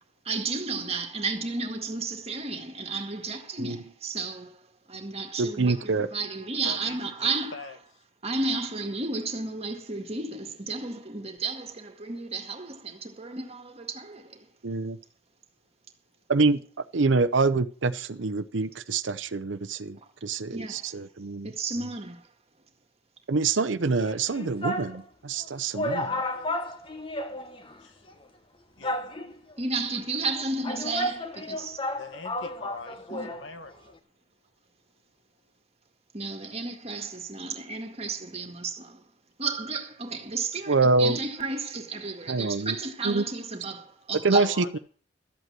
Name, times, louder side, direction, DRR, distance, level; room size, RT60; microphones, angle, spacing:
voice 1, 0.3-4.6 4.9-7.5 8.2-14.5 20.5-20.9 21.4-22.2 29.6-31.8 33.1-33.3 36.1-39.0 39.4-44.5, right 3 dB, 35° right, 1.9 m, -32 dB
voice 2, 5.4-6.1 14.6-15.0 16.3-16.6 16.9-21.5 23.3-26.2 40.7-41.2 42.3-42.8 43.0-43.2 44.2-44.8, right 3 dB, 80° right, 0.7 m, -26 dB
voice 3, 6.7-8.0 27.8-28.1 28.8-29.1 31.6-34.0 40.6-40.7 44.3-44.8, left 3 dB, 80° left, 1.7 m, -43 dB
sound 1, 24.0-25.0 25.4-25.5 25.7-27.8 28.1-28.2 28.8-29.5 30.3-33.5 33.7-33.8, left 1 dB, 30° left, 1.3 m, -32 dB
13.0 x 8.1 x 7.6 m
head